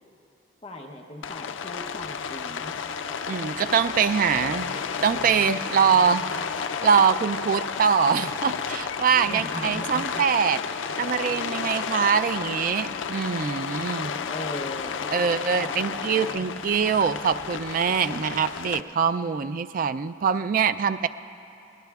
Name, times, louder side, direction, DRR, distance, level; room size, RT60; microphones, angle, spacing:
voice 1, 0.6-2.8 9.3-10.2 10.5-10.7 14.3-16.5, left 1 dB, 30° left, 2 dB, 0.8 m, -39 dB
Rain, 1.2-18.8, left 6 dB, 90° left, 0.4 m, -32 dB
Cheering / Applause / Crowd, 2.6-11.5, left 1 dB, 60° left, 2.9 m, -46 dB
voice 2, 3.3-4.7 5.0-6.3 6.8-10.6 11.0-14.1 15.1-21.1, right 6 dB, 45° right, 11 dB, 0.3 m, -23 dB
23.5 x 17.5 x 2.3 m, 2.8 s
head